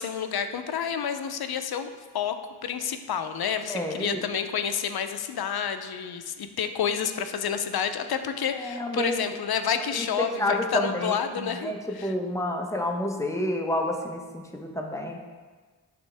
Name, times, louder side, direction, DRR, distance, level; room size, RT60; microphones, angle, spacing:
voice 1, 0.0-2.4 2.6-11.7 12.0-12.1, left 7 dB, 65° left, 8 dB, 0.7 m, -29 dB
voice 2, 3.7-4.3 8.5-9.2 9.9-15.2, left 1 dB, 5° left, 1 dB, 1.1 m, -29 dB
11.0 x 3.7 x 3.4 m, 1.4 s
cardioid pair, 40°, 40 cm